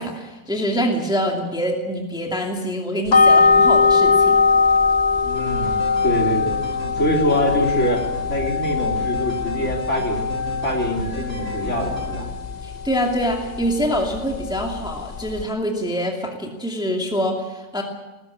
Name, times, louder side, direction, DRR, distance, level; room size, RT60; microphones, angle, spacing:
voice 1, 0.0-4.5 12.6-17.8, equal, ahead, 1 dB, 2.4 m, -25 dB
sound 1, 3.1-15.4, left 4 dB, 70° left, 0.4 m, -21 dB
voice 2, 5.2-6.5 7.0-8.0 8.3-10.2 10.6-12.3, equal, 40° left, 0 dB, 3.9 m, -24 dB
sound 2, 5.3-12.2, right 2 dB, 65° right, 4.9 m, -34 dB
19.5 x 15.5 x 9.8 m, 1.1 s
omnidirectional pair, 1.9 m